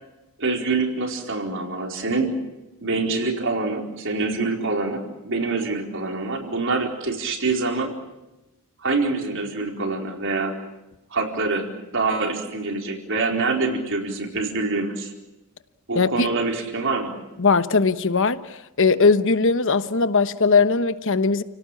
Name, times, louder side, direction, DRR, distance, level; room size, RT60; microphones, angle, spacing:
voice 1, 0.4-2.4 2.8-7.9 8.8-10.6 11.1-15.1 15.9-17.1, right 3 dB, 60° right, 4.4 m, -25 dB
voice 2, 15.9-16.3 17.4-21.4, left 4 dB, 60° left, 1.1 m, -19 dB
30.0 x 18.0 x 8.7 m
head